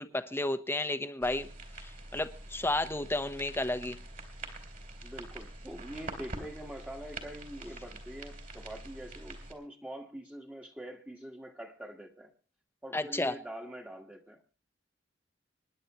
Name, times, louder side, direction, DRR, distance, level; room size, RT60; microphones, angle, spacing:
voice 1, 0.0-1.5 1.8-4.0 12.9-13.3, left 2 dB, 15° left, 10 dB, 1.0 m, -32 dB
sound 1, 1.2-9.5, right 2 dB, 50° right, 3.2 m, -45 dB
voice 2, 5.0-12.3 12.8-14.4, right 1 dB, 10° right, 1 dB, 1.5 m, -44 dB
26.0 x 11.0 x 3.0 m, 0.36 s
head